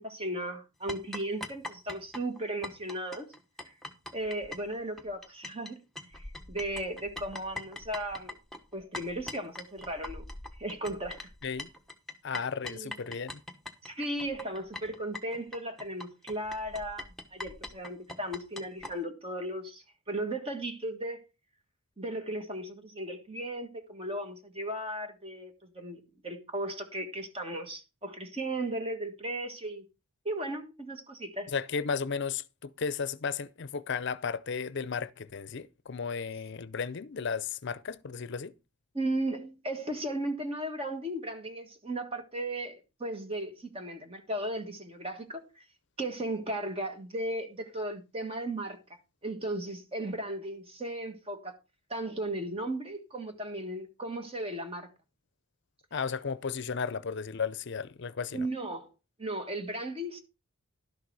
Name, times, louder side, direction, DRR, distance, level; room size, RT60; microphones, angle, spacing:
voice 1, 0.0-3.3 3.6-3.7 4.1-5.8 6.1-8.4 8.7-10.2 10.6-11.2 12.7-12.9 13.8-21.2 22.0-29.8 30.2-31.5 38.9-45.6 46.0-48.8 49.2-51.5 51.9-54.9 58.3-58.9 59.2-60.2, right 1 dB, 25° right, 1.6 m, -36 dB
sound 1, 0.9-5.7 6.0-18.9, left 2 dB, ahead, 1.1 m, -42 dB
voice 2, 12.2-13.4 31.5-38.5 55.9-58.5, left 5 dB, 55° left, 0.6 m, -34 dB
12.0 x 6.7 x 4.7 m
head